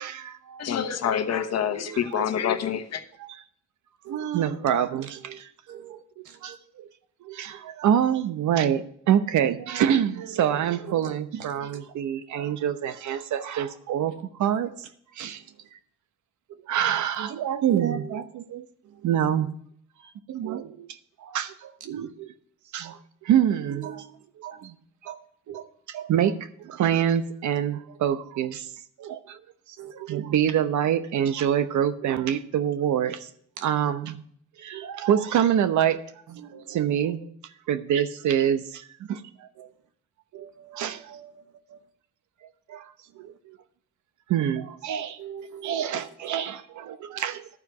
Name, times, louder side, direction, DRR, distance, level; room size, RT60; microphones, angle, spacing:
voice 1, 0.0-0.7 1.9-2.3 3.2-3.3 4.1-5.5 6.4-6.9 7.2-14.9 15.2-15.4 16.7-18.7 19.0-19.5 20.3-20.9 21.2-22.3 22.7-24.0 24.4-24.7 25.0-25.2 25.5-26.4 26.6-28.7 29.0-29.4 29.9-33.3 33.6-34.2 34.6-36.0 36.4-37.3 37.7-38.6 39.0-39.7 40.3-40.5 40.7-41.1 42.7-42.8 43.2-43.6 44.3-45.2 45.6-47.5, right 9 dB, 70° right, 11 dB, 0.9 m, -26 dB
voice 2, 0.6-3.0, left 8 dB, 60° left, 7 dB, 1.1 m, -26 dB
voice 3, 5.7-6.6 15.2-15.4 17.7-18.2 18.8-19.1 23.7-24.2 24.5-24.6 29.8-29.9 33.6-33.7 36.3-36.8 37.9-38.0 40.3-41.4 41.7-41.8 45.2-46.3 47.1-47.2, right 8 dB, 90° right, 8 dB, 1.2 m, -42 dB
12.0 x 4.6 x 6.7 m, 0.63 s
cardioid pair, 90°, 30 cm